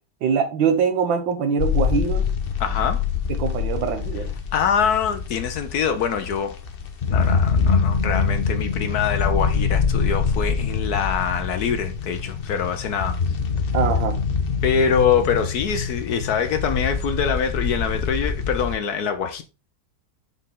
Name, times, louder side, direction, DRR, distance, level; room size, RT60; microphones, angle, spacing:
voice 1, 0.2-2.3 3.3-4.3 13.7-14.2, right 6 dB, 85° right, 1.8 m, -23 dB
sound 1, 1.6-18.8, left 5 dB, 50° left, 0.6 m, -25 dB
voice 2, 2.6-3.0 4.5-6.5 7.1-13.2 14.6-19.4, left 7 dB, 65° left, 1.1 m, -24 dB
6.2 x 5.4 x 3.7 m
omnidirectional pair, 2.1 m